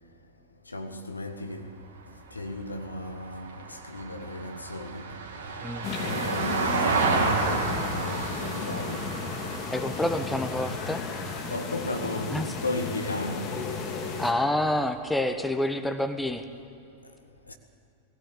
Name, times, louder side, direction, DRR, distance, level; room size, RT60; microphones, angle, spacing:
voice 1, 0.7-1.7 2.3-5.1 6.0-9.0 11.5-13.6 17.5-17.6, left 2 dB, 80° left, 1.6 m, -35 dB
Vehicle, 1.6-12.1 14.4-14.5, right 4 dB, 55° right, 2.7 m, -32 dB
sound 1, 5.8-14.3, left 4 dB, 35° left, 2.8 m, -34 dB
voice 2, 9.7-11.0 12.3-12.5 14.2-16.4, left 1 dB, 5° left, 1.2 m, -28 dB
19.0 x 16.5 x 8.6 m
figure-of-eight pair, 90°, 0 cm